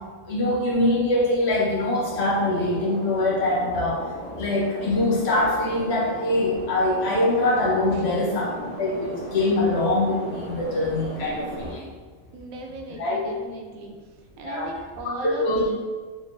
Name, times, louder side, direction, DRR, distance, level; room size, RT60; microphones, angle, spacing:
voice 1, 0.3-4.0 4.4-11.8 13.0-13.3 14.4-14.7 15.2-15.7, left 2 dB, 60° left, -3 dB, 0.8 m, -23 dB
sound 1, 2.0-11.8, right 1 dB, 35° left, 1.2 m, -37 dB
voice 2, 12.3-13.9 14.4-15.7, right 1 dB, 90° right, 1 dB, 1.1 m, -37 dB
3.6 x 3.1 x 2.5 m, 1.4 s
omnidirectional pair, 1.4 m